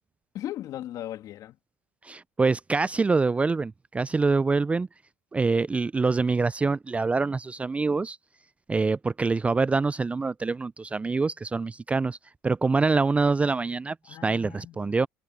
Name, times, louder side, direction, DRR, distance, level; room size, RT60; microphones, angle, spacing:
voice 1, 0.3-1.6 14.0-15.0, left 13 dB, 55° left, 2.8 m, -37 dB
voice 2, 2.0-4.9 5.3-8.2 8.7-12.2 12.4-15.1, right 4 dB, 15° right, 0.4 m, -25 dB
hypercardioid pair, 80°, 7 cm